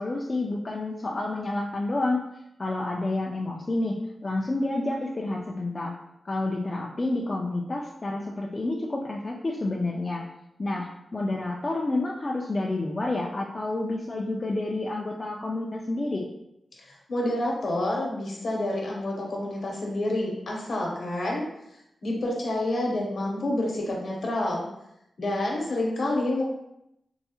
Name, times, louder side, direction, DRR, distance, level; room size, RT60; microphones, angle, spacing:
voice 1, 0.0-2.2 2.6-5.9 6.2-10.2 10.6-16.3, left 2 dB, 30° left, -2 dB, 0.3 m, -29 dB
voice 2, 16.8-21.4 22.0-24.6 25.2-26.4, left 1 dB, 60° left, -1 dB, 0.8 m, -28 dB
4.5 x 2.0 x 2.8 m, 0.83 s
wide cardioid pair, 120°, 0 cm